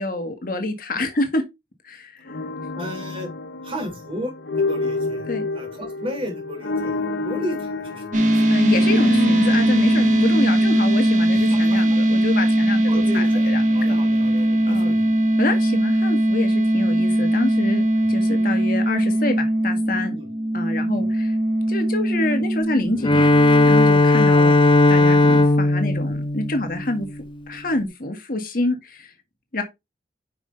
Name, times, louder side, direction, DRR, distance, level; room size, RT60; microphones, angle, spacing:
voice 1, 0.0-1.4 1.8-2.3 5.3-5.5 8.5-13.6 13.9-14.0 14.7-14.9 15.4-17.8 18.1-20.2 20.5-21.4 21.7-24.5 24.9-27.1 27.5-29.1 29.5-29.6, left 2 dB, 55° left, 1.8 m, -27 dB
sound 1, 2.3-12.3, left 2 dB, 80° left, 1.2 m, -29 dB
voice 2, 2.8-3.3 3.6-8.4 11.3-11.6 12.9-15.1 18.0-18.1 20.1-20.3 20.9-21.0, equal, 30° right, 3.5 m, -34 dB
sound 2, 8.1-23.7, right 1 dB, 45° right, 2.2 m, -20 dB
Bowed string instrument, 23.0-27.3, left 2 dB, 30° left, 0.6 m, -16 dB
9.7 x 5.5 x 3.3 m
head